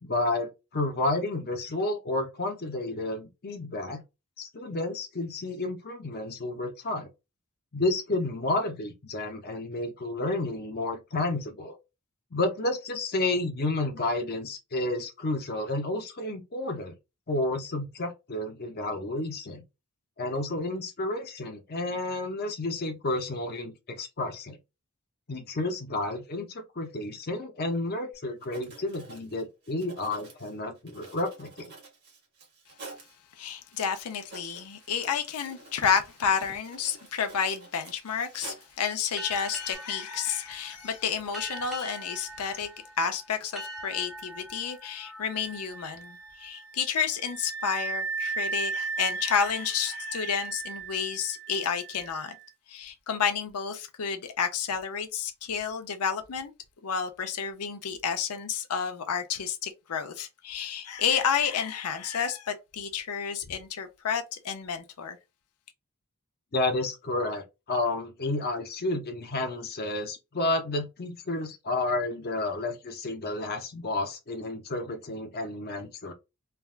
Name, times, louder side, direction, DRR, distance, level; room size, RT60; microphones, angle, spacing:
voice 1, 0.0-4.0 4.4-7.1 7.7-11.8 12.3-16.9 17.3-19.6 20.2-24.6 25.3-31.7 66.5-76.1, left 2 dB, 45° left, 0.7 m, -31 dB
Writing, 28.1-28.2 28.4-33.2 33.7-33.8 34.1-38.8 39.2-39.8, right 3 dB, 45° right, 1.4 m, -49 dB
voice 2, 33.4-42.7 43.0-52.3 52.7-56.5 56.8-65.2, left 7 dB, 85° left, 0.6 m, -30 dB
sound 1, 39.2-46.4, equal, ahead, 0.7 m, -43 dB
Wind instrument woodwind instrument, 45.0-52.5, right 4 dB, 60° right, 0.7 m, -36 dB
3.3 x 2.3 x 2.4 m
head